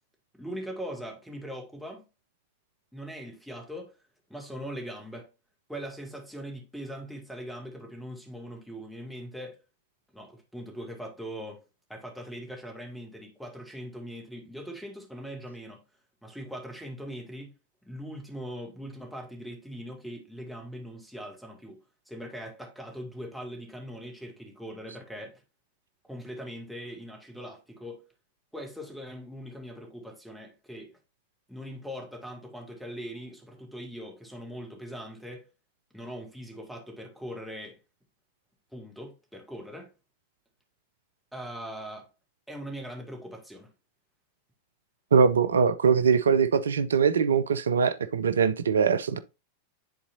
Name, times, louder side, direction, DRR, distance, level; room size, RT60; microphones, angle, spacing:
voice 1, 0.3-2.1 2.9-3.9 4.3-5.3 5.7-9.6 10.1-11.6 11.9-15.8 16.2-17.5 17.8-21.8 22.1-25.4 26.0-28.1 28.5-30.9 31.5-35.4 35.9-37.8 38.7-39.9 41.3-42.1 42.5-43.7, equal, ahead, 2.0 m, -41 dB
voice 2, 45.1-49.2, right 6 dB, 70° right, 0.5 m, -22 dB
10.0 x 4.1 x 2.5 m
figure-of-eight pair, 90°, 0 cm